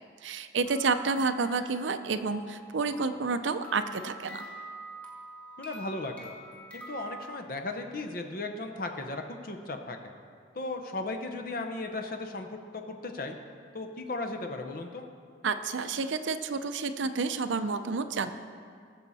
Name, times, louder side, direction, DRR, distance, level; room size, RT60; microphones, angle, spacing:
voice 1, 0.2-4.4 15.4-18.3, right 4 dB, 80° right, 10 dB, 0.6 m, -30 dB
sound 1, 0.6-7.2, right 1 dB, 5° left, 1.3 m, -46 dB
voice 2, 5.6-6.4 6.7-10.1 10.5-13.4 13.7-15.1, left 2 dB, 50° left, 4 dB, 0.8 m, -36 dB
19.0 x 7.2 x 4.1 m, 2.2 s
head